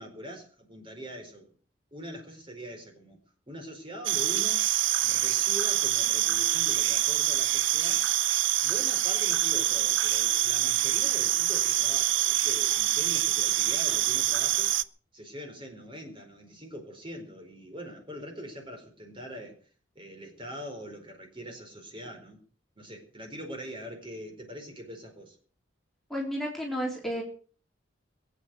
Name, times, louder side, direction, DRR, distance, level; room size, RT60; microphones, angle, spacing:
voice 1, 0.0-1.5 1.9-3.2 3.5-4.6 5.0-8.1 8.6-14.7 15.1-19.6 19.9-22.4 22.8-25.4, equal, 25° right, 4.4 m, -42 dB
sound 1, 4.1-14.8, right 13 dB, 70° right, 0.7 m, -25 dB
voice 2, 26.1-27.2, equal, ahead, 3.5 m, -32 dB
22.0 x 8.9 x 6.4 m
head